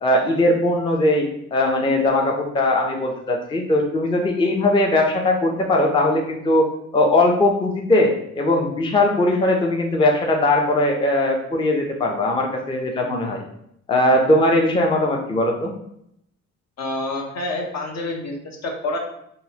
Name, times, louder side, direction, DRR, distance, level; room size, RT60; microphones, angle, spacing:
voice 1, 0.0-6.7 6.9-13.4 13.9-15.7, left 1 dB, 15° left, 2 dB, 0.4 m, -19 dB
voice 2, 16.8-19.0, left 2 dB, 60° left, 1 dB, 0.8 m, -28 dB
3.8 x 2.1 x 2.8 m, 0.74 s
cardioid pair, 90°, 30 cm